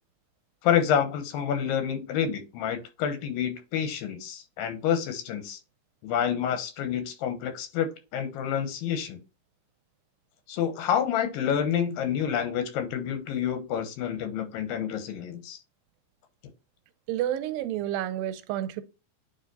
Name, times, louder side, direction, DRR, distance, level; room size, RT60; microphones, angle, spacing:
voice 1, 0.6-5.6 6.0-9.2 10.5-15.6, left 8 dB, 85° left, 2.8 m, -28 dB
voice 2, 17.1-18.8, right 12 dB, 90° right, 2.4 m, -30 dB
9.1 x 3.0 x 4.0 m
omnidirectional pair, 3.9 m